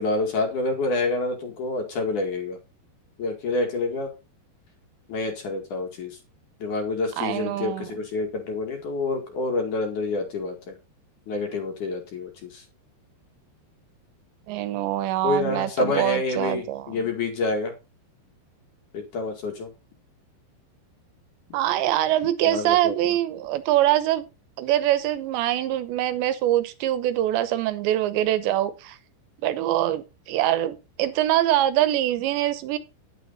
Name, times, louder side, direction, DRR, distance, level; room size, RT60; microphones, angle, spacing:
voice 1, 0.0-2.6 3.2-4.1 5.1-6.2 6.6-10.7 11.3-12.6 15.2-17.7 18.9-19.7 22.4-23.2, left 3 dB, 50° left, 4 dB, 3.1 m, -28 dB
voice 2, 7.2-7.9 14.5-17.0 21.5-24.3 24.6-29.0 29.4-32.8, right 13 dB, 80° right, 13 dB, 3.1 m, -24 dB
10.5 x 9.6 x 4.1 m, 0.27 s
omnidirectional pair, 5.3 m